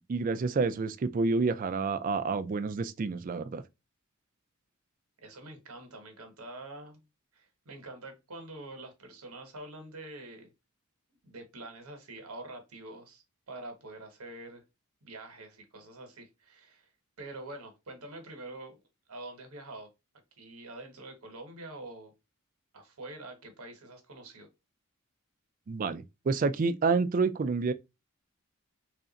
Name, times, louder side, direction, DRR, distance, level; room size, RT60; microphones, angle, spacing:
voice 1, 0.1-3.6 25.7-27.7, right 4 dB, 40° right, 0.3 m, -29 dB
voice 2, 5.2-7.0 7.3-10.5 11.2-14.6 15.0-16.9 17.2-18.8 19.1-19.9 20.4-22.1 22.7-24.5, right 2 dB, 80° right, 1.1 m, -45 dB
3.3 x 2.4 x 3.9 m
head